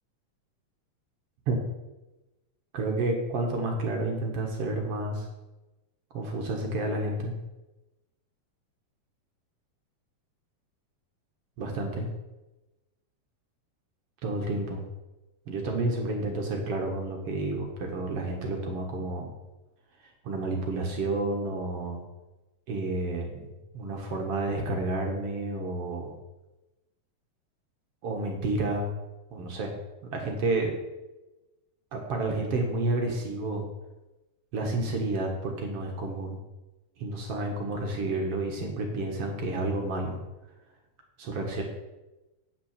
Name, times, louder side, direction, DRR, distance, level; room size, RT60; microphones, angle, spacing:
voice 1, 2.7-5.3 6.1-7.3 11.6-12.1 14.2-14.8 15.5-19.3 20.2-22.0 22.7-23.5 23.7-26.2 28.0-28.9 29.3-29.7 30.1-30.7 31.9-33.7 34.5-36.4 37.0-40.2 41.2-41.6, right 2 dB, 55° right, 2 dB, 1.9 m, -30 dB
8.7 x 6.1 x 7.2 m, 1.1 s
omnidirectional pair, 3.8 m